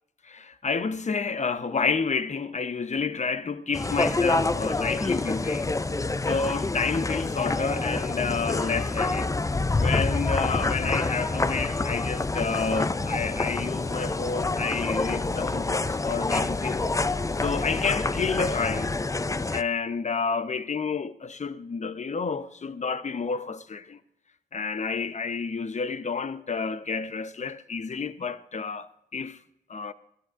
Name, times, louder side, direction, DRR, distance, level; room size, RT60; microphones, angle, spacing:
voice 1, 0.3-5.7 6.3-9.3 9.8-16.9 17.4-18.9 19.5-24.0 24.5-29.4 29.7-29.9, left 5 dB, 40° left, 0.9 m, -30 dB
sound 1, 3.7-19.6, left 3 dB, 20° left, 0.5 m, -27 dB
20.5 x 13.0 x 2.6 m
supercardioid pair, 50°, 18 cm